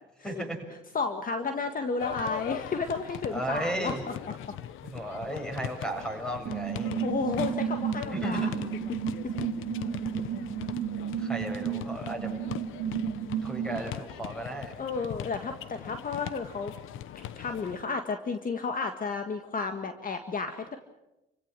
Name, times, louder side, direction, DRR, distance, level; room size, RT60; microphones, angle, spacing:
voice 1, 0.2-0.6 3.3-4.0 4.8-6.9 8.1-8.7 11.2-12.3 13.4-14.8, right 1 dB, 5° left, 3 dB, 7.5 m, -35 dB
voice 2, 0.9-3.9 4.5-4.6 7.0-8.5 14.8-16.7 17.4-20.8, left 4 dB, 45° left, 7 dB, 1.8 m, -32 dB
sound 1, 2.0-17.8, left 11 dB, 85° left, 1.0 m, -41 dB
Morse-Sine, 6.5-13.8, right 8 dB, 90° right, 2.2 m, -32 dB
29.5 x 16.5 x 7.7 m, 0.93 s
cardioid pair, 90°, 20 cm